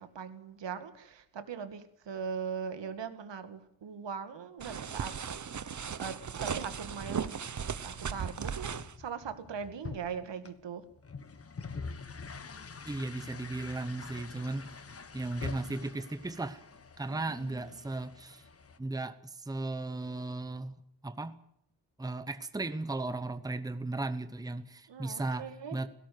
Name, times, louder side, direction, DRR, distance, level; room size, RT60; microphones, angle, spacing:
voice 1, 0.0-5.1 6.0-7.4 7.8-8.7 9.0-10.8 17.1-17.7 24.9-25.8, right 6 dB, 80° right, 10 dB, 2.2 m, -40 dB
sound 1, 4.6-8.9, right 7 dB, 45° right, 1.1 m, -37 dB
sound 2, 7.8-18.8, left 4 dB, 35° left, 1.3 m, -46 dB
voice 2, 12.9-14.8 15.1-16.6 17.0-18.4 18.8-20.7 21.0-21.3 22.0-25.9, right 2 dB, 10° right, 11 dB, 0.9 m, -36 dB
18.0 x 17.0 x 9.5 m, 0.72 s
wide cardioid pair, 165°, 42 cm